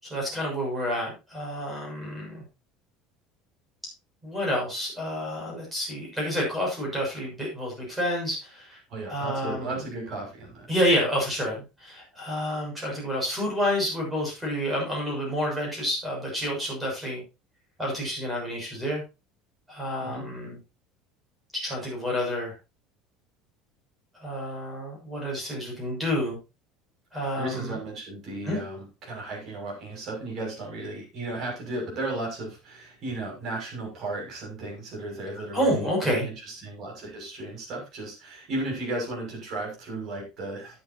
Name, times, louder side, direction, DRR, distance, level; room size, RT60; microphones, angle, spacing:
voice 1, 0.0-2.4 4.2-8.8 9.0-9.7 10.7-17.2 17.8-19.0 19.7-20.6 21.5-22.5 24.1-26.4 27.1-27.8 28.4-28.6 35.5-36.3, equal, 5° right, -2 dB, 6.5 m, -29 dB
voice 2, 8.9-10.7 20.0-20.2 27.1-40.8, right 2 dB, 40° right, -1 dB, 6.5 m, -35 dB
13.5 x 9.9 x 2.8 m, 0.27 s
cardioid pair, 170°, 0 cm